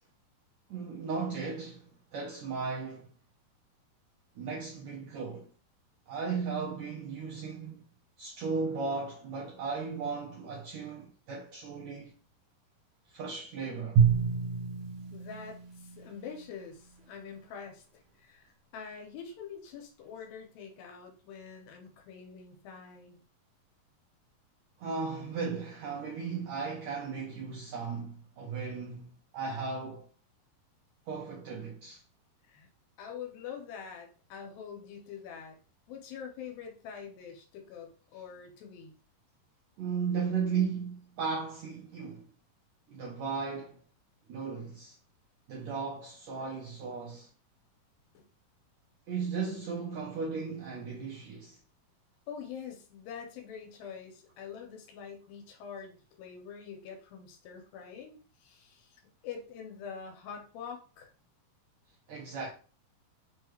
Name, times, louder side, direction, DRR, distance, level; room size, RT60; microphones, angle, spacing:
voice 1, 0.7-3.1 4.3-5.5 6.1-7.9 8.2-12.1 13.1-14.0 24.8-30.1 31.1-32.0 39.8-42.3 42.9-43.8 44.3-45.0 45.5-47.3 49.1-51.6 62.1-62.5, right 5 dB, 80° right, 1.6 m, -36 dB
Drum, 14.0-16.3, right 7 dB, 65° right, 1.6 m, -28 dB
voice 2, 15.1-17.8 18.2-23.2 32.5-32.7 33.0-35.6 35.9-38.9 48.1-48.3 52.3-61.1, left 7 dB, 90° left, 2.6 m, -45 dB
6.0 x 2.3 x 3.1 m
omnidirectional pair, 4.1 m